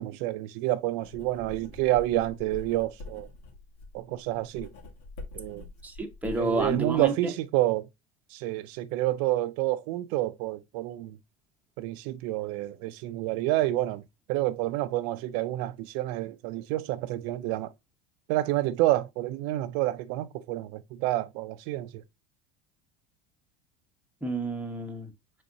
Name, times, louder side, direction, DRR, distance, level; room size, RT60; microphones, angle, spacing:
voice 1, 0.0-3.3 3.9-4.7 5.3-5.6 6.4-7.9 8.3-11.2 11.8-14.0 14.3-17.7 18.3-22.0, right 16 dB, 70° right, 0.5 m, -29 dB
Writing, 1.0-7.0, left 2 dB, 80° left, 2.3 m, -45 dB
voice 2, 5.8-7.1 24.2-25.1, right 3 dB, 5° right, 0.9 m, -29 dB
5.4 x 3.7 x 2.7 m
supercardioid pair, 130°, 31 cm